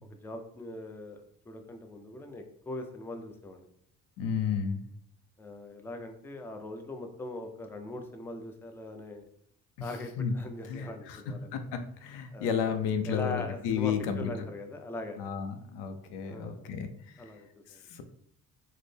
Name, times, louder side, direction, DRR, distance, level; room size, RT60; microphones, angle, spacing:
voice 1, 0.2-3.7 5.4-9.3 9.8-11.6 12.3-12.6 13.1-15.2 16.3-16.7 17.2-17.8, left 2 dB, 5° left, 5 dB, 0.4 m, -41 dB
voice 2, 4.2-4.8 10.2-10.3 10.7-11.2 11.5-14.3 15.2-16.9 17.9-18.0, left 7 dB, 80° left, 8 dB, 0.6 m, -32 dB
3.9 x 2.1 x 3.3 m, 0.66 s
supercardioid pair, 75°, 40 cm